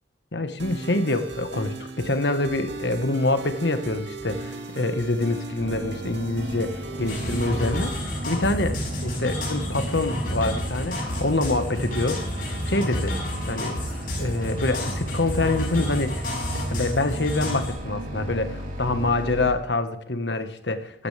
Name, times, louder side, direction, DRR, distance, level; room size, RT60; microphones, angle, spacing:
voice 1, 0.3-8.8 9.0-12.2 12.5-13.2 13.4-13.8 14.2-16.3 16.5-21.1, left 2 dB, 80° left, 9 dB, 1.4 m, -26 dB
sound 1, 0.6-8.0, right 3 dB, 80° right, 2.3 m, -37 dB
sound 2, 5.6-19.5, right 1 dB, 45° right, 4.0 m, -34 dB
sound 3, 7.1-17.7, equal, 50° left, 6.1 m, -30 dB
14.5 x 14.0 x 3.4 m, 0.73 s
head